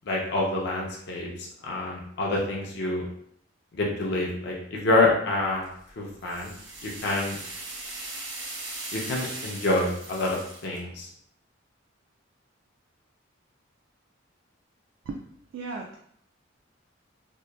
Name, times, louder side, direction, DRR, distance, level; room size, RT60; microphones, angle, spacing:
voice 1, 0.1-3.0 3.7-5.7 6.0-6.5 6.8-7.4 8.9-11.1, left 2 dB, 60° left, -2 dB, 0.5 m, -27 dB
sound 1, 5.6-10.8, right 2 dB, 60° right, 0.7 m, -39 dB
voice 2, 15.5-16.0, right 3 dB, 80° right, 0 dB, 0.3 m, -35 dB
2.8 x 2.1 x 2.2 m, 0.67 s
head